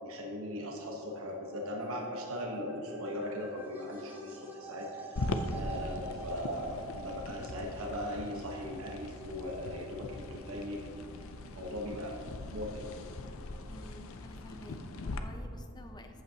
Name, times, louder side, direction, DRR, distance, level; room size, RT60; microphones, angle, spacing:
voice 1, 0.0-5.2 5.5-10.8 11.6-12.2 12.5-13.0, left 1 dB, 70° right, -1 dB, 1.1 m, -39 dB
sound 1, 0.8-12.0, right 5 dB, 10° right, 1.3 m, -50 dB
sound 2, 5.2-15.2, left 2 dB, 65° left, 0.5 m, -41 dB
voice 2, 13.7-16.2, left 1 dB, 20° left, 5 dB, 0.7 m, -51 dB
14.0 x 8.2 x 2.8 m, 2.6 s
head